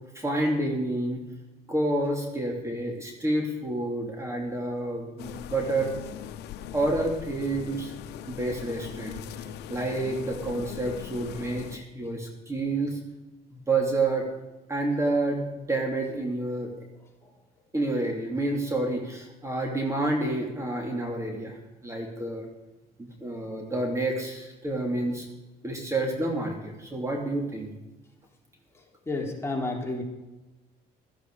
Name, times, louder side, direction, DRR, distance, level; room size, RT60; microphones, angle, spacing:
voice 1, 0.1-1.2 1.7-5.9 6.7-7.9 8.3-13.0 13.7-14.3 14.7-16.7 17.7-22.5 23.0-25.3 25.6-27.7, right 2 dB, 15° right, 1 dB, 3.0 m, -29 dB
sound 1, 5.2-11.8, left 10 dB, 80° left, 0.9 m, -40 dB
voice 2, 28.7-30.0, left 2 dB, 15° left, -1 dB, 3.7 m, -32 dB
15.5 x 14.0 x 4.9 m, 1.1 s
cardioid pair, 110°, 17 cm